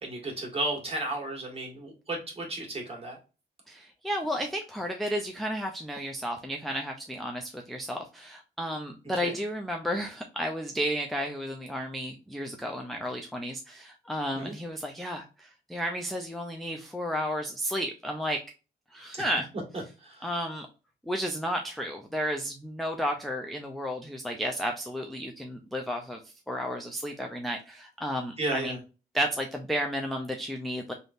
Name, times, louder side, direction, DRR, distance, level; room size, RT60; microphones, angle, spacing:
voice 1, 0.0-3.2 9.2-9.3 14.3-14.6 19.1-19.2 20.0-20.3 28.4-28.8, right 2 dB, 30° right, -1 dB, 1.6 m, -33 dB
voice 2, 3.7-18.4 18.9-19.5 20.2-20.7 21.1-28.8 29.1-30.9, equal, ahead, 2 dB, 0.4 m, -32 dB
3.4 x 2.6 x 2.4 m, 0.32 s
cardioid pair, 100°, 19 cm